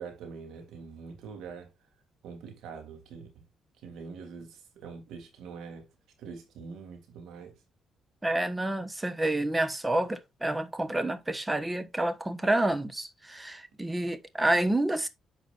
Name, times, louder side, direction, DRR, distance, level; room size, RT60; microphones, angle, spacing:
voice 1, 0.0-1.7 2.2-3.4 3.8-5.9 6.2-7.6, right 5 dB, 85° right, 3.1 m, -44 dB
voice 2, 8.2-15.1, right 1 dB, 15° right, 1.2 m, -29 dB
10.0 x 6.2 x 2.6 m
cardioid pair, 90°, 0 cm